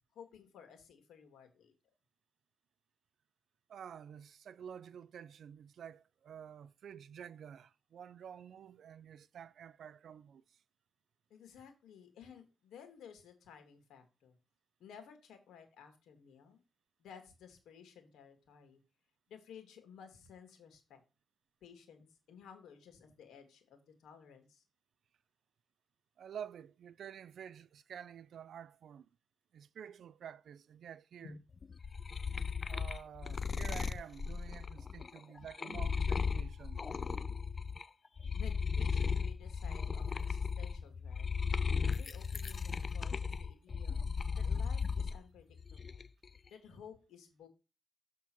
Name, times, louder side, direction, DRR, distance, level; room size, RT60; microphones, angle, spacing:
voice 1, 0.1-1.7 11.3-14.4 14.8-16.6 17.0-18.8 19.3-21.0 21.6-24.6 31.2-31.4 38.3-41.3 41.8-44.0 44.4-46.1 46.5-47.5, left 7 dB, 90° left, 1.9 m, -55 dB
voice 2, 3.7-10.6 26.2-29.1 29.5-31.4 32.6-36.8, right 8 dB, 70° right, 0.4 m, -50 dB
sound 1, 31.6-37.8 38.2-45.2 45.6-46.2, left 5 dB, 40° left, 0.3 m, -36 dB
7.2 x 3.7 x 6.0 m
cardioid pair, 100°, 0 cm